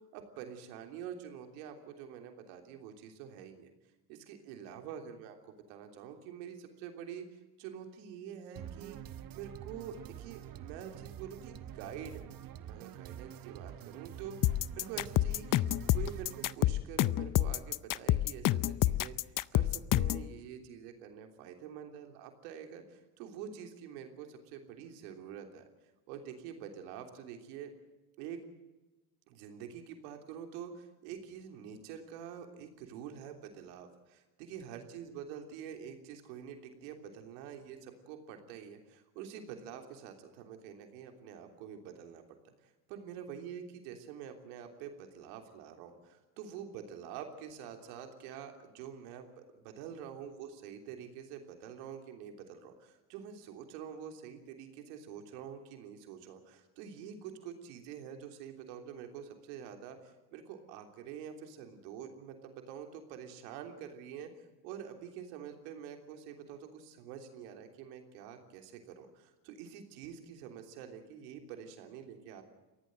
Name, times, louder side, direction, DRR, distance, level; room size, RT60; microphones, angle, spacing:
voice 1, 0.1-3.7 4.1-9.0 9.3-12.1 12.6-25.7 26.1-27.7 28.2-28.4 29.3-64.3 64.6-72.4, right 8 dB, 80° right, 5 dB, 3.4 m, -47 dB
sound 1, 8.6-16.6, right 11 dB, 45° right, 1.1 m, -47 dB
sound 2, 14.4-20.3, left 14 dB, 40° left, 0.6 m, -28 dB
23.0 x 16.5 x 7.7 m, 1.1 s
supercardioid pair, 80°, 48 cm